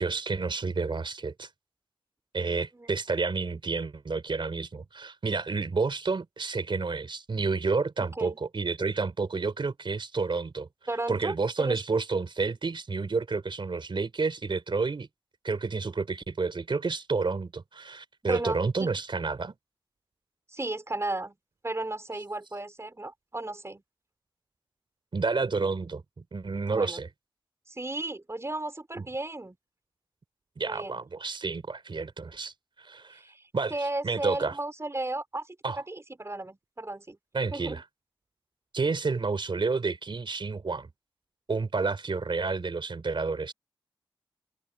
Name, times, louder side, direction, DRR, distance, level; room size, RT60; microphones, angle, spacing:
voice 1, 0.0-1.5 2.3-10.7 11.1-15.1 15.4-19.5 25.1-27.1 29.0-29.1 30.6-33.2 33.5-33.7 34.0-34.6 35.6-35.8 37.3-37.8 38.7-40.9 41.5-43.5, right 4 dB, 65° right, 3.8 m, -30 dB
voice 2, 10.9-11.8 18.2-18.9 20.5-21.4 21.6-23.8 26.7-27.0 27.7-29.6 30.6-31.0 33.1-33.4 33.7-35.6 35.9-37.2 37.5-37.8, right 2 dB, 30° right, 4.5 m, -34 dB
cardioid pair, 60°, 9 cm